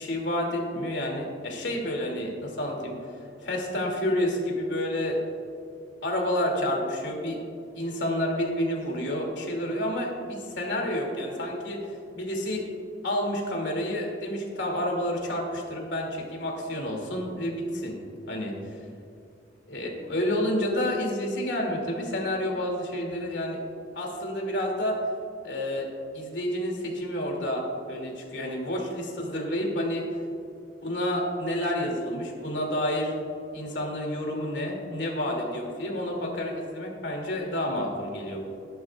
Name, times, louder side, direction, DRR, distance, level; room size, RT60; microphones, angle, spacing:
voice 1, 0.0-3.0 3.4-5.2 6.0-7.4 7.7-11.8 12.1-12.6 13.0-17.9 18.3-18.5 19.7-23.6 23.9-25.0 25.4-25.9 26.1-30.0 30.8-33.1 33.5-38.4, left 1 dB, 80° left, 0 dB, 2.6 m, -29 dB
18.0 x 11.0 x 2.4 m, 2.5 s
head